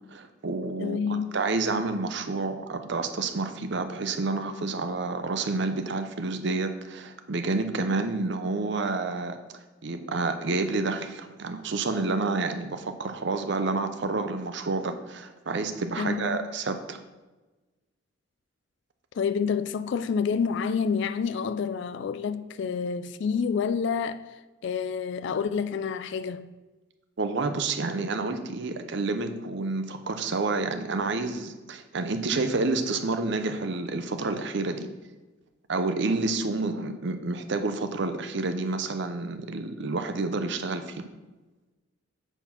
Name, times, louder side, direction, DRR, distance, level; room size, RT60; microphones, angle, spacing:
voice 1, 0.1-9.4 9.8-17.0 27.2-34.9 35.7-41.1, right 3 dB, 60° right, 0.7 m, -29 dB
voice 2, 0.8-1.3 16.0-16.4 19.1-24.2 24.6-26.5, left 6 dB, 60° left, 0.3 m, -28 dB
8.0 x 4.3 x 5.8 m
head